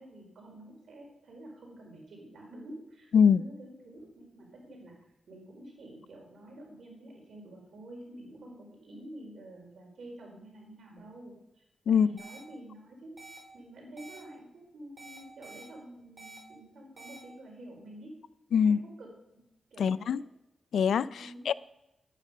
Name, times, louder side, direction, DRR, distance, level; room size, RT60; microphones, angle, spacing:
voice 1, 0.0-5.0 5.3-13.2 13.5-18.2 18.6-19.2 19.7-20.2 21.2-21.5, right 1 dB, 75° right, 0 dB, 4.6 m, -49 dB
sound 1, 12.2-12.4 13.2-13.4 14.0-14.2 15.0-15.6 16.2-16.4 17.0-17.2, right 3 dB, 45° right, 4.8 m, -48 dB
voice 2, 19.8-20.2 20.7-21.5, left 7 dB, 80° left, 18 dB, 0.3 m, -23 dB
10.0 x 9.2 x 5.2 m, 0.86 s
cardioid pair, 55°, 0 cm